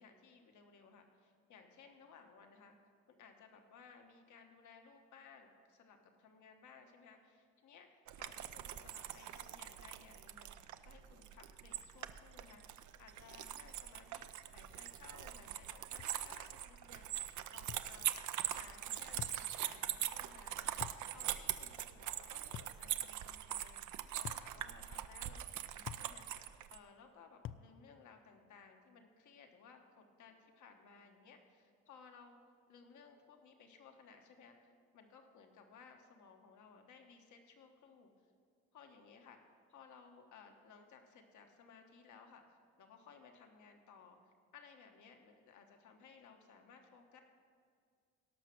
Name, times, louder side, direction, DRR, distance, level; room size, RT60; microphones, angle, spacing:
voice 1, 0.0-2.8 3.2-10.5 10.8-23.8 24.2-26.4 26.7-32.4 32.7-38.1 38.7-39.4 39.7-47.2, left 5 dB, 75° left, 4 dB, 1.4 m, -60 dB
sound 1, 8.1-26.8, right 12 dB, 75° right, 0.6 m, -42 dB
sound 2, 16.0-16.2 17.7-17.9 19.2-19.4 20.8-21.1 22.5-22.8 24.2-24.5 25.9-26.1 27.4-27.7, left 10 dB, 45° left, 0.4 m, -47 dB
17.5 x 5.9 x 6.0 m, 2.1 s
cardioid pair, 90°, 30 cm